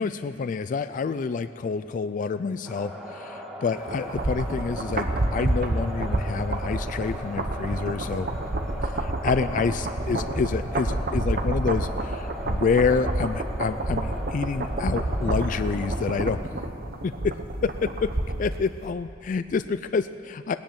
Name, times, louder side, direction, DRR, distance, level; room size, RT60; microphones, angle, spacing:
voice 1, 0.0-8.3 8.8-16.4 17.0-17.3 17.6-18.1 18.4-20.6, left 5 dB, 45° left, 12 dB, 0.3 m, -28 dB
sound 1, 2.6-16.3, equal, ahead, 1.6 m, -39 dB
sound 2, 3.9-18.6 18.8-18.9, right 1 dB, 50° right, 1.0 m, -29 dB
18.0 x 10.5 x 7.2 m, 2.6 s
head